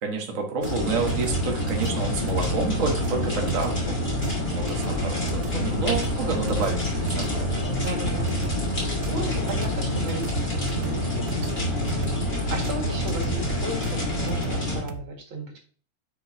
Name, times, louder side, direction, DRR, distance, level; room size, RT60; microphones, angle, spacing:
voice 1, 0.0-7.7, right 4 dB, 65° right, 1 dB, 0.7 m, -29 dB
sound 1, 0.6-14.8, left 1 dB, 20° left, 2.7 m, -27 dB
sound 2, 0.6-15.0, right 9 dB, 85° right, 2.0 m, -39 dB
voice 2, 7.8-8.3 8.8-11.6 12.3-15.6, right 3 dB, 45° right, 0 dB, 2.4 m, -36 dB
10.0 x 5.1 x 2.7 m, 0.43 s
omnidirectional pair, 3.4 m